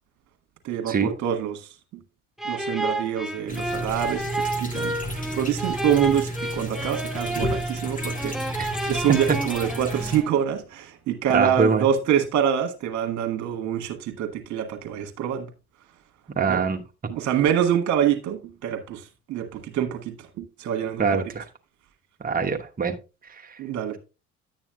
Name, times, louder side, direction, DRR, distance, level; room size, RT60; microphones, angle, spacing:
voice 1, 0.6-2.0 2.4-8.5 8.8-15.5 16.5-16.6 17.1-21.2 23.6-24.0, right 9 dB, 55° right, 1.5 m, -26 dB
sound 1, 2.4-10.4, right 2 dB, ahead, 0.9 m, -31 dB
sound 2, 3.5-10.2, equal, 20° left, 1.8 m, -32 dB
voice 2, 11.3-11.8 16.4-16.8 21.0-21.4 22.2-23.0, right 5 dB, 25° right, 1.2 m, -23 dB
10.5 x 8.8 x 2.3 m
figure-of-eight pair, 50°, 35 cm